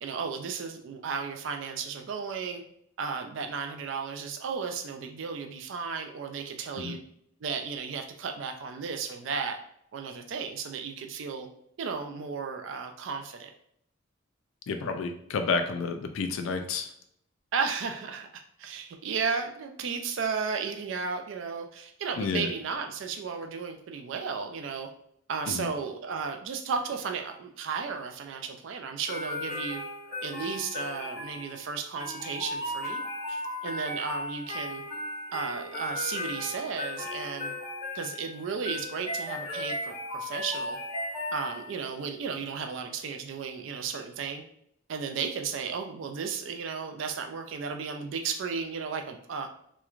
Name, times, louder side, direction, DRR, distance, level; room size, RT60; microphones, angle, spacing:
voice 1, 0.0-2.6 3.0-7.0 7.4-9.6 9.9-11.5 11.8-13.5 17.5-24.9 25.3-29.8 30.2-33.0 33.3-34.8 35.3-37.5 37.9-40.8 41.3-44.4 44.9-49.5, right 5 dB, 70° right, 5 dB, 0.4 m, -34 dB
voice 2, 14.7-16.9 22.2-22.5 25.5-25.7, left 4 dB, 85° left, 6 dB, 0.4 m, -30 dB
sound 1, 29.1-41.9, left 1 dB, 20° right, 1.0 m, -36 dB
3.0 x 2.2 x 2.4 m, 0.71 s
head